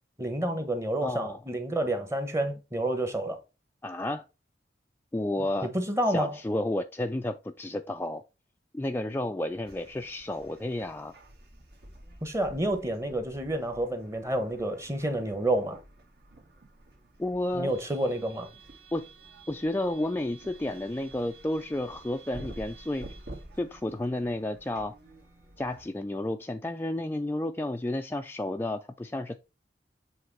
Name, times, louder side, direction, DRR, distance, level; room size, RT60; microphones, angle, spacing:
voice 1, 0.2-3.4 5.6-6.3 12.2-15.8 17.5-18.5, right 1 dB, 15° right, 1.1 m, -29 dB
voice 2, 1.0-1.4 3.8-4.2 5.1-5.7 6.1-8.2 8.7-11.1 17.2-17.7 18.9-19.1 19.5-23.1 23.6-24.9 25.6-29.4, left 1 dB, 10° left, 0.3 m, -31 dB
sound 1, 9.5-25.9, right 2 dB, 60° right, 2.1 m, -50 dB
7.6 x 3.2 x 4.5 m
head